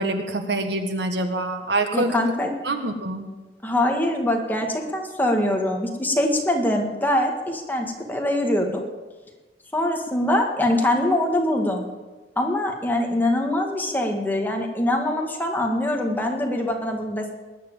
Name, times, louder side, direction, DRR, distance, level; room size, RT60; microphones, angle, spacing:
voice 1, 0.0-2.1 2.6-3.2, right 2 dB, 70° right, 6 dB, 1.6 m, -25 dB
voice 2, 1.9-2.5 3.6-8.9 9.7-11.9 12.4-17.3, left 1 dB, 10° left, 2 dB, 1.9 m, -23 dB
20.0 x 9.8 x 7.3 m, 1.2 s
head